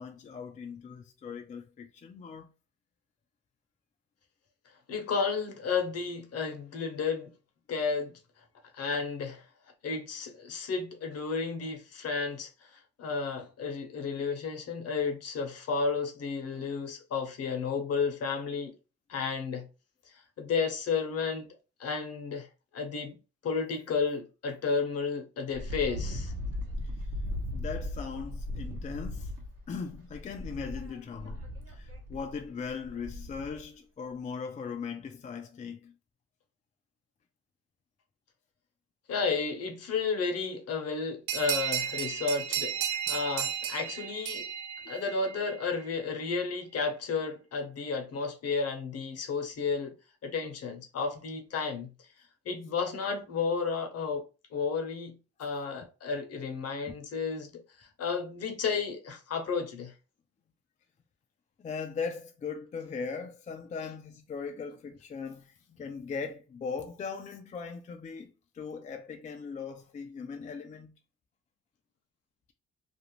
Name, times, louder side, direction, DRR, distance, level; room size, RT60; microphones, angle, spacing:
voice 1, 0.0-2.5 27.5-29.3 29.7-31.4 31.7-35.9 44.8-44.9 61.6-71.0, left 5 dB, 25° left, 0.3 m, -39 dB
voice 2, 4.9-7.3 7.7-8.1 8.7-9.4 9.8-18.7 19.1-19.7 20.1-21.5 21.8-22.5 22.7-23.2 23.4-26.3 39.1-44.5 44.9-49.9 50.2-51.9 52.4-54.2 54.5-59.9, left 5 dB, 55° left, 0.8 m, -32 dB
Wind, 25.5-33.6, left 1 dB, 50° right, 0.9 m, -38 dB
sound 1, 41.3-45.5, right 9 dB, 80° right, 0.5 m, -33 dB
2.5 x 2.1 x 3.0 m
cardioid pair, 90°, 30 cm